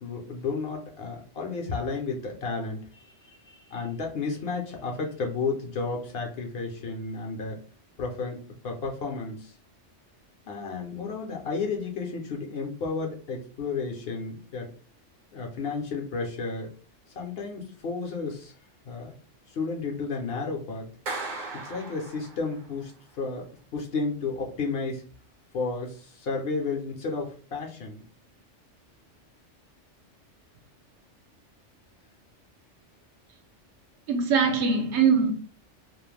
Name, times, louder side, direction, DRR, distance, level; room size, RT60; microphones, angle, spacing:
voice 1, 0.0-7.6 8.0-9.6 10.5-14.7 15.3-16.7 17.1-18.5 18.9-19.1 19.5-20.9 21.6-25.0 25.5-28.0, left 4 dB, 60° left, 0.7 m, -32 dB
Clapping, 21.1-22.7, right 3 dB, 50° right, 0.6 m, -37 dB
voice 2, 34.1-35.3, right 5 dB, 70° right, 0.9 m, -22 dB
2.3 x 2.0 x 3.1 m
omnidirectional pair, 1.2 m